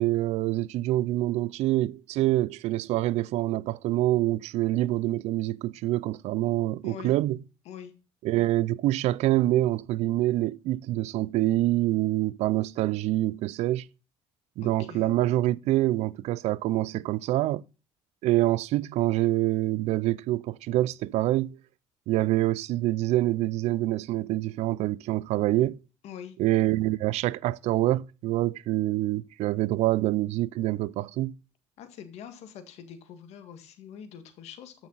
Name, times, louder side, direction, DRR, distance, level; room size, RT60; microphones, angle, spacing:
voice 1, 0.0-7.4 8.2-13.9 14.6-17.6 18.2-21.6 22.1-25.8 26.4-31.3, right 16 dB, 75° right, 0.4 m, -26 dB
voice 2, 6.8-7.1 7.7-7.9 14.6-15.1 26.0-26.3 31.8-34.7, left 8 dB, 75° left, 1.9 m, -44 dB
13.5 x 6.1 x 4.0 m
supercardioid pair, 85°, 11 cm